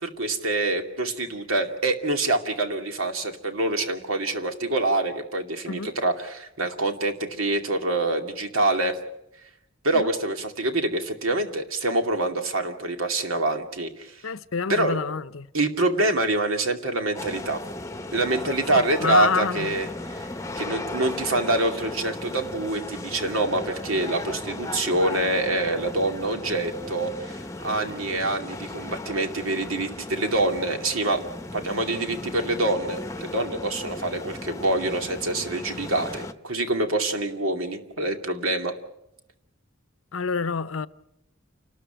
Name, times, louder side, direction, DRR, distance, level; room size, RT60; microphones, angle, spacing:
voice 1, 0.0-9.0 9.8-14.2 14.7-15.0 15.5-17.6 18.1-19.9 20.1-20.3 20.6-31.2 31.5-38.7, right 2 dB, 90° right, 2.5 m, -26 dB
voice 2, 14.2-15.5 18.7-19.8 40.1-40.9, left 5 dB, 90° left, 0.8 m, -28 dB
sound 1, 17.1-36.3, left 2 dB, 15° left, 0.8 m, -36 dB
28.5 x 13.0 x 9.0 m
head